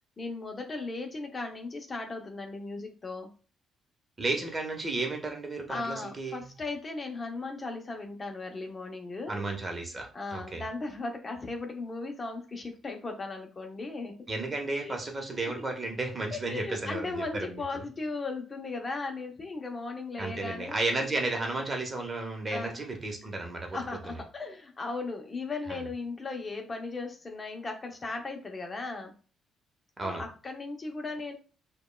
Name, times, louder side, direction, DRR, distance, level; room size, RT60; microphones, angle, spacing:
voice 1, 0.2-3.3 5.7-9.4 10.1-14.1 14.8-15.0 15.3-15.4 16.3-20.8 22.5-22.7 23.7-29.1 30.0-31.3, left 3 dB, 35° left, 3 dB, 0.7 m, -37 dB
voice 2, 4.2-6.5 9.3-10.6 14.3-17.8 20.2-23.8 24.0-24.1 25.7-25.8 30.0-30.2, right 2 dB, 30° right, 3 dB, 0.9 m, -33 dB
5.1 x 2.3 x 2.2 m, 0.37 s
cardioid pair, 90°, 0 cm